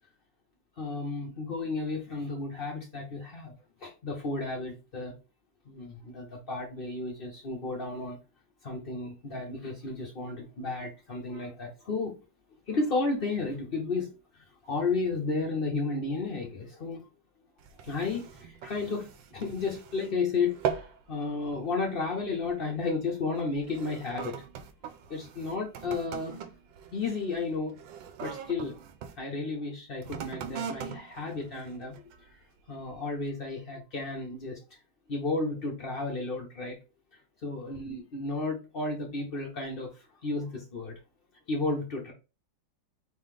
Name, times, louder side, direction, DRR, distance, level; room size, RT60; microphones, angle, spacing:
voice 1, 0.8-3.5 3.8-5.1 5.7-8.2 8.6-12.1 12.7-17.1 17.8-24.4 25.1-26.4 26.9-27.8 28.2-28.8 29.2-32.4 32.7-34.6 35.1-36.8 37.4-41.0 41.5-42.1, left 3 dB, 65° left, 0.5 m, -33 dB
sound 1, 17.6-20.2 20.5-21.0 21.4-21.7 22.4-22.6 23.4-29.2 30.0-32.3 32.9-33.0, right 8 dB, 75° right, 1.3 m, -40 dB
4.2 x 3.0 x 3.7 m
omnidirectional pair, 2.3 m